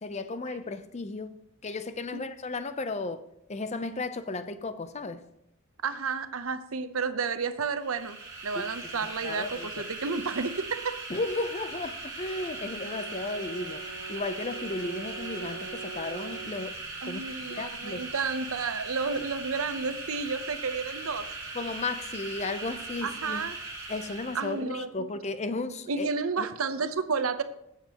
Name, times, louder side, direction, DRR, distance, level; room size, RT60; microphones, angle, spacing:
voice 1, 0.0-3.2 3.5-5.2 8.5-8.6 9.0-9.8 11.1-16.8 17.0-17.2 17.5-18.1 21.5-23.4 23.9-26.1 26.4-26.5, left 3 dB, 30° left, 0.6 m, -34 dB
voice 2, 5.8-8.2 8.4-11.0 17.0-21.3 23.0-23.6 24.3-25.1 25.9-27.4, right 5 dB, 75° right, 0.8 m, -31 dB
sound 1, 7.7-24.6, right 3 dB, 20° right, 2.9 m, -40 dB
Brass instrument, 12.3-16.6, right 5 dB, 80° left, 2.0 m, -43 dB
17.0 x 7.4 x 2.9 m
head